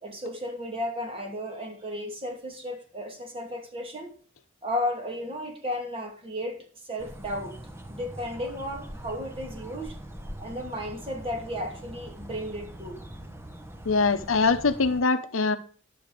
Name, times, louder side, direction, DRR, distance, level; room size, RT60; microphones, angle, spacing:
voice 1, 0.0-4.1 4.6-6.6 6.9-7.5 7.9-9.9 10.4-13.0, left 1 dB, 30° right, 2 dB, 2.7 m, -34 dB
sound 1, 7.0-15.0, right 1 dB, 10° right, 1.1 m, -42 dB
voice 2, 13.8-15.6, left 4 dB, 75° left, 11 dB, 0.9 m, -23 dB
11.0 x 7.1 x 5.1 m, 0.42 s
head